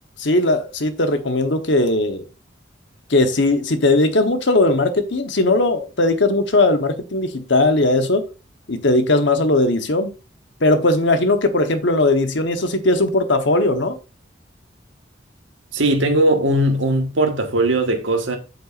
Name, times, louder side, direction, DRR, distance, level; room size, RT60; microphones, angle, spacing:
voice 1, 0.2-2.2 3.1-8.3 8.7-10.1 10.6-14.0, left 2 dB, 65° left, 1.1 m, -18 dB
voice 2, 15.7-18.4, right 1 dB, 80° right, 1.5 m, -19 dB
7.9 x 7.8 x 2.5 m
head